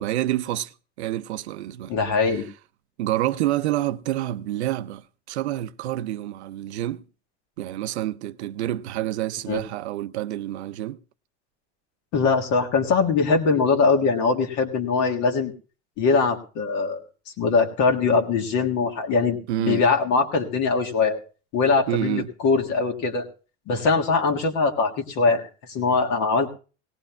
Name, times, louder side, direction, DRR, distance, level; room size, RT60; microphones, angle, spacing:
voice 1, 0.0-1.9 2.3-2.4 3.0-7.0 7.6-11.0 19.5-19.8 21.9-22.3, right 14 dB, 85° right, 0.5 m, -28 dB
voice 2, 1.9-2.5 9.5-9.6 12.1-15.5 16.0-17.0 17.4-21.2 21.5-23.3 23.7-26.5, left 4 dB, 60° left, 1.7 m, -22 dB
18.0 x 17.5 x 2.3 m
hypercardioid pair, 85°, 33 cm